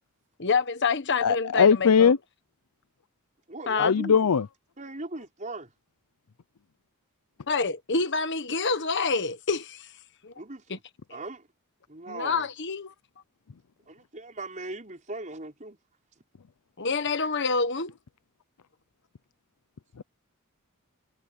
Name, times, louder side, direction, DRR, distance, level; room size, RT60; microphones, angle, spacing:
voice 1, 0.4-2.1 3.7-4.0 7.5-9.9 10.2-10.3 10.7-10.8 11.1-11.2 12.1-12.9 16.8-17.9, left 4 dB, 55° left, 1.3 m, -27 dB
voice 2, 1.2-2.2 3.8-4.5, left 6 dB, 85° left, 0.6 m, -20 dB
voice 3, 3.5-4.3 4.8-5.7 10.4-10.6 11.1-11.5 11.9-12.5 13.9-15.8, right 2 dB, 35° right, 5.2 m, -39 dB
head